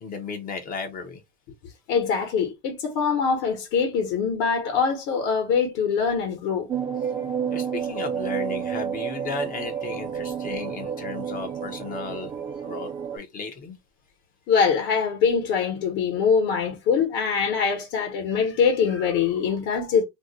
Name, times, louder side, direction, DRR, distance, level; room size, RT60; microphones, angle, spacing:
voice 1, 0.0-1.2 7.0-7.1 7.5-12.3 12.6-13.8, left 5 dB, 25° left, 0.6 m, -35 dB
voice 2, 1.9-6.7 14.5-20.0, left 6 dB, 50° left, 1.0 m, -23 dB
sound 1, 6.7-13.2, right 8 dB, 15° right, 0.3 m, -30 dB
2.6 x 2.1 x 3.8 m
supercardioid pair, 140°, 34 cm